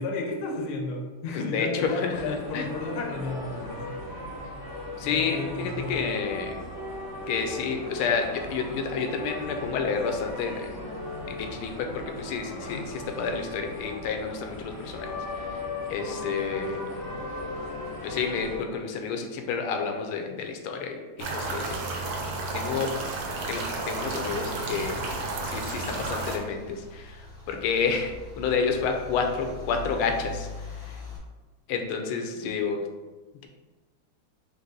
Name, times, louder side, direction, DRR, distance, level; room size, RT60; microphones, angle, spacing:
voice 1, 0.0-4.1 5.0-6.0, left 2 dB, 65° left, 1 dB, 1.1 m, -33 dB
voice 2, 1.3-2.7 5.0-6.6 7.3-10.8 11.3-15.1 15.5-15.6 15.9-16.8 18.0-21.8 22.5-22.9 23.5-25.1 25.4-28.1 28.4-30.5 30.8-31.0 31.7-32.8, left 5 dB, 85° left, 4 dB, 1.5 m, -30 dB
sound 1, 2.1-18.6, left 2 dB, 40° left, 0.8 m, -37 dB
sound 2, 21.2-26.4, right 2 dB, 70° right, 0.9 m, -32 dB
Car / Engine starting / Idling, 24.3-31.2, left 3 dB, ahead, 0.8 m, -42 dB
4.1 x 3.3 x 3.7 m, 1.3 s
omnidirectional pair, 2.3 m